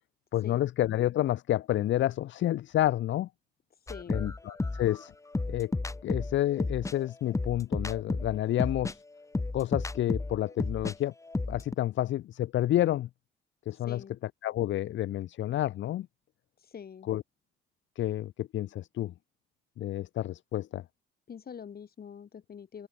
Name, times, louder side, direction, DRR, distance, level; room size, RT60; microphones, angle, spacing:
voice 1, 0.3-3.3 4.1-5.1 5.5-5.7 6.0-9.0 9.5-11.1 11.5-13.1 13.7-14.0 14.4-16.1 17.1-17.2 18.0-19.1 19.8-20.8, left 13 dB, 70° left, 0.8 m, -29 dB
voice 2, 3.9-4.4 13.9-14.2 16.6-17.1 21.3-22.9, left 7 dB, 50° left, 6.6 m, -45 dB
sound 1, 3.9-11.0 11.2-11.8, left 2 dB, 15° left, 1.1 m, -33 dB
open air
cardioid pair, 90°, 20 cm